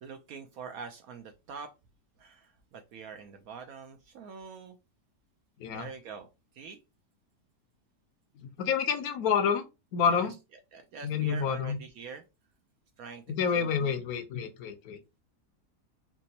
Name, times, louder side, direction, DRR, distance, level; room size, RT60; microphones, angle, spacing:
voice 1, 0.0-1.7 2.2-4.8 5.7-6.3 6.5-6.8 10.0-10.3 10.7-12.2 13.0-14.0, right 6 dB, 70° right, 6 dB, 0.9 m, -45 dB
voice 2, 8.4-9.6 9.9-10.3 11.0-11.8 13.3-15.0, left 7 dB, 70° left, 9 dB, 1.0 m, -28 dB
3.4 x 2.9 x 2.8 m, 0.26 s
omnidirectional pair, 1.8 m